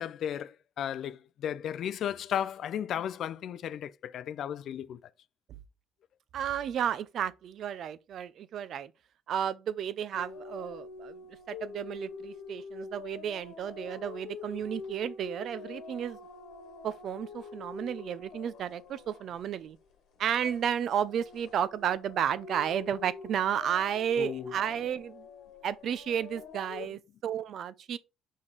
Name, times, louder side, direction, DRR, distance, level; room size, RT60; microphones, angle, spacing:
voice 1, 0.0-5.0 24.2-24.5, left 9 dB, 55° left, 0.4 m, -34 dB
voice 2, 6.3-8.9 9.3-11.2 11.5-16.2 16.8-19.8 20.2-25.2 25.6-28.0, right 9 dB, 55° right, 0.5 m, -32 dB
sound 1, 10.1-19.9 20.3-26.9, left 5 dB, 75° left, 1.3 m, -46 dB
5.6 x 5.0 x 3.9 m
cardioid pair, 130°, 0 cm